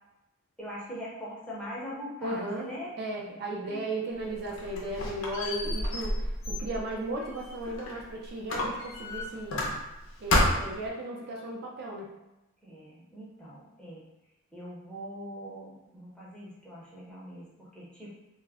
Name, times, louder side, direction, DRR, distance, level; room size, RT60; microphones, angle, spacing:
voice 1, 0.6-2.9 3.7-3.9 12.6-14.0 14.5-18.1, equal, 5° left, -8 dB, 0.7 m, -42 dB
voice 2, 2.2-2.7 3.0-9.6 10.2-12.1, right 1 dB, 50° right, -2 dB, 0.4 m, -35 dB
Squeak, 4.2-8.0 8.5-10.0 10.3-10.9, left 1 dB, 70° left, 0.6 m, -30 dB
2.3 x 2.1 x 3.4 m, 0.97 s
head